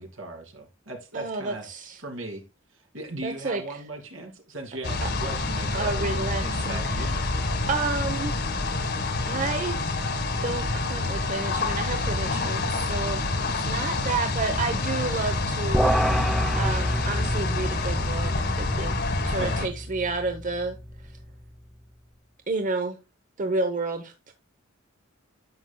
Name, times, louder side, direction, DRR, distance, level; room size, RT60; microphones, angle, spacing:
voice 1, 0.0-1.6 2.0-2.4 2.7-7.3 19.3-19.7, right 2 dB, 70° right, 2.3 m, -38 dB
voice 2, 1.1-2.0 3.2-3.8 5.0-5.1 5.7-7.1 7.7-8.3 9.2-9.9 10.4-13.2 13.5-16.2 16.6-18.9 19.2-20.8 22.5-23.0 23.4-24.3, right 3 dB, 40° right, 0.8 m, -30 dB
sound 1, 4.8-19.7, left 3 dB, 55° left, 1.5 m, -27 dB
sound 2, 15.7-21.3, equal, ahead, 0.6 m, -28 dB
10.5 x 7.2 x 2.2 m
head